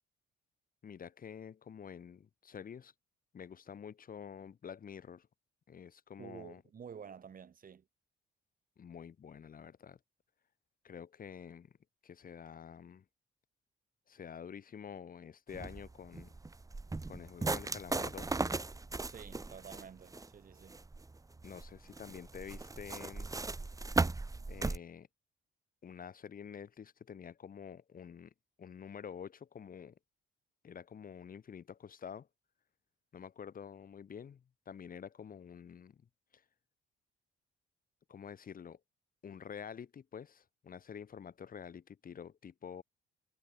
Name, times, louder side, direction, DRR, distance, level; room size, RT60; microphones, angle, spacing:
voice 1, 0.8-2.9 3.3-5.3 5.7-6.6 8.8-10.0 10.8-11.7 12.0-13.0 14.1-16.3 17.1-18.4 21.4-23.3 24.5-25.1 25.8-28.3 28.6-30.0 30.6-32.3 33.1-36.0 36.3-36.4 38.1-38.8 39.2-42.8, left 7 dB, 45° left, 1.4 m, -48 dB
voice 2, 6.2-7.8 19.0-20.8, right 7 dB, 45° right, 1.6 m, -50 dB
sound 1, 15.5-24.8, right 3 dB, 15° right, 1.1 m, -37 dB
cardioid pair, 90°, 20 cm